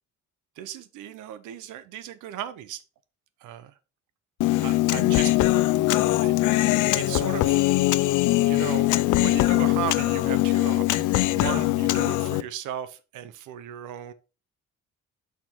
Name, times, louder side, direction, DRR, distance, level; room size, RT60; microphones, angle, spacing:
voice 1, 0.6-2.8 3.4-3.7 4.6-5.6 6.2-6.3 6.9-7.6 8.4-14.1, right 10 dB, 85° right, 0.7 m, -36 dB
Human voice, 4.4-12.4, left 17 dB, 80° left, 0.5 m, -22 dB
5.9 x 4.4 x 4.5 m
cardioid pair, 90°, 30 cm